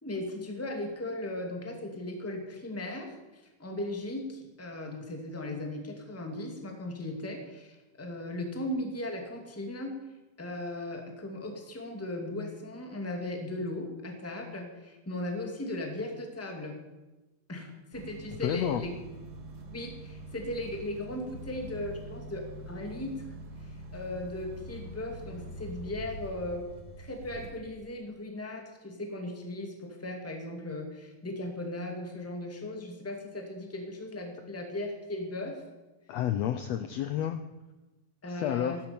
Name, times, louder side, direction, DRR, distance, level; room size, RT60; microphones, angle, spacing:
voice 1, 0.0-9.9 10.4-16.8 17.5-18.9 19.7-23.3 23.6-26.6 27.0-35.6 38.2-38.8, left 1 dB, 5° left, 3 dB, 1.7 m, -37 dB
sound 1, 17.9-27.5, right 2 dB, 55° right, 2.8 m, -44 dB
voice 2, 18.4-18.8 36.1-37.4 38.3-38.8, left 11 dB, 85° left, 9 dB, 1.5 m, -30 dB
15.5 x 12.5 x 7.0 m, 1.1 s
omnidirectional pair, 3.8 m